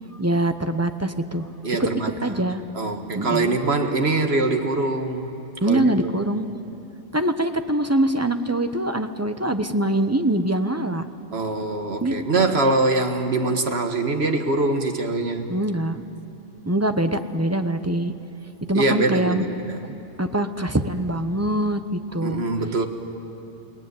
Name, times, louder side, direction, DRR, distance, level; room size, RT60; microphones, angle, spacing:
voice 1, 0.2-1.5 2.2-2.6 3.1-3.6 5.6-6.5 7.1-11.1 12.0-12.4 15.5-16.0 16.6-18.1 18.7-19.5 20.2-22.4, right 1 dB, 15° right, 8 dB, 0.8 m, -23 dB
voice 2, 1.6-2.3 2.7-5.3 5.7-6.1 11.3-15.6 18.7-19.8 22.2-22.9, right 2 dB, 60° right, 5 dB, 1.9 m, -23 dB
29.5 x 19.0 x 9.6 m, 2.8 s
omnidirectional pair, 1.2 m